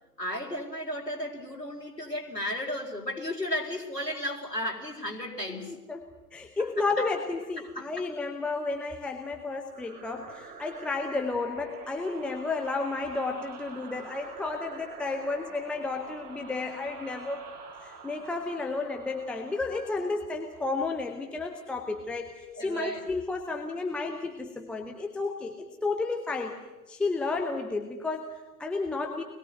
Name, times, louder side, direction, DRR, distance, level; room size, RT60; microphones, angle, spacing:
voice 1, 0.2-5.8 6.6-6.8 7.6-7.8 22.6-23.1, left 1 dB, 85° left, -2 dB, 4.6 m, -34 dB
voice 2, 5.5-17.5 17.8-26.6 26.9-29.2, left 3 dB, ahead, 2 dB, 0.7 m, -32 dB
sound 1, 9.7-21.0, right 5 dB, 20° right, 6.3 m, -46 dB
25.0 x 21.0 x 8.0 m, 1.2 s
figure-of-eight pair, 125°, 48 cm